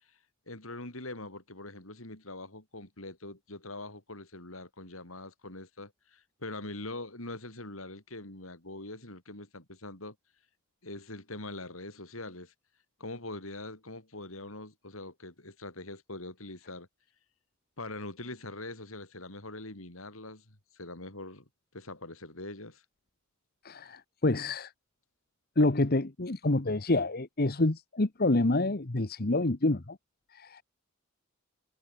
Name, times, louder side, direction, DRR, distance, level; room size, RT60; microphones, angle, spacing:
voice 1, 0.5-10.1 10.8-12.5 13.0-16.9 17.8-21.5 21.7-22.8, left 2 dB, 75° left, 6.3 m, -43 dB
voice 2, 23.6-24.7 25.6-30.0 30.3-30.6, left 2 dB, 45° left, 1.2 m, -27 dB
head